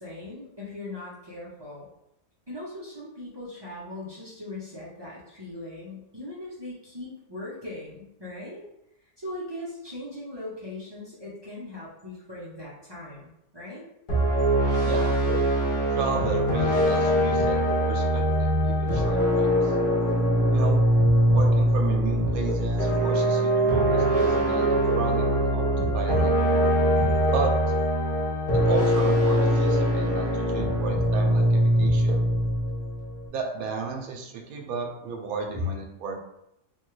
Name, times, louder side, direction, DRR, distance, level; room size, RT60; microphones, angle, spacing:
voice 1, 0.0-1.9 2.5-8.7 9.2-13.8 35.5-35.7, left 2 dB, 30° right, -8 dB, 0.4 m, -39 dB
sound 1, 14.1-33.3, equal, 45° left, 0.9 m, -22 dB
voice 2, 14.8-15.1 15.9-17.6 17.9-19.8 20.5-20.8 21.3-26.3 27.3-27.5 28.5-32.2 33.3-36.1, right 5 dB, 80° right, 2 dB, 1.0 m, -34 dB
3.2 x 2.2 x 3.1 m, 0.82 s
omnidirectional pair, 1.5 m